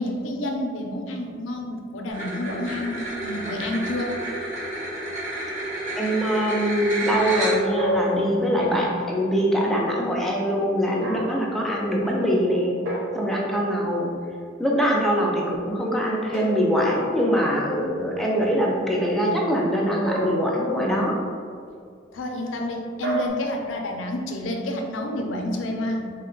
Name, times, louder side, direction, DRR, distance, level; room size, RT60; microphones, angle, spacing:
voice 1, 0.0-4.1 22.1-26.1, left 1 dB, 85° left, 3 dB, 0.5 m, -29 dB
sound 1, 2.1-7.9, right 1 dB, 40° right, 1.1 m, -31 dB
voice 2, 6.0-12.8 13.1-14.1 14.6-21.2, equal, ahead, -3 dB, 0.4 m, -23 dB
sound 2, 7.8-8.8 11.0-11.5 12.9-13.7 16.3-17.4 20.1-21.0 23.0-23.3, equal, 75° right, 0.6 m, -30 dB
3.6 x 2.2 x 3.8 m, 2.2 s
head